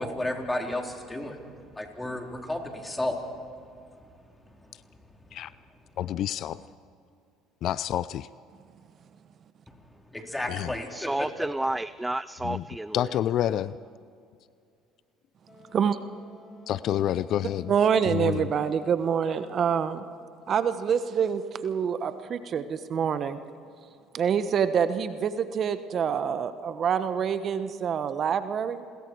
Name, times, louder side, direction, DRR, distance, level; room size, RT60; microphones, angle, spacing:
voice 1, 0.0-1.5 1.7-3.2 5.3-5.4 9.7-9.8 10.1-11.3, left 1 dB, 10° left, 1 dB, 4.0 m, -32 dB
voice 2, 6.0-6.6 7.6-8.3 10.5-10.7 12.4-12.6 12.9-13.8 16.7-17.7 18.0-18.5, left 11 dB, 60° left, 17 dB, 0.4 m, -28 dB
voice 3, 10.9-13.1, right 1 dB, 10° right, 16 dB, 0.4 m, -31 dB
Wind instrument woodwind instrument, 15.5-20.2, left 2 dB, 30° left, 7.9 m, -54 dB
voice 4, 17.7-20.0 20.5-23.4 24.1-28.8, right 7 dB, 50° right, 11 dB, 1.1 m, -26 dB
29.5 x 21.5 x 4.7 m, 2.4 s
hypercardioid pair, 75°, 0 cm